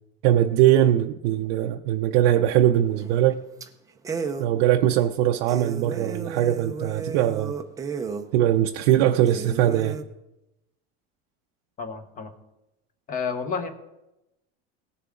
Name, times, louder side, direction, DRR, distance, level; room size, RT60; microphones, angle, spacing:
voice 1, 0.2-3.4 4.4-7.5 8.3-10.0, right 12 dB, 75° right, 0.6 m, -21 dB
sound 1, 3.0-3.3 3.6-3.7 4.0-4.5 5.0-5.1 5.5-8.3 8.8-8.9 9.3-10.0, right 5 dB, 10° right, 0.5 m, -33 dB
voice 2, 11.8-12.3 13.1-13.7, left 5 dB, 25° left, 1.0 m, -30 dB
18.0 x 6.8 x 3.7 m
cardioid pair, 160°, 30 cm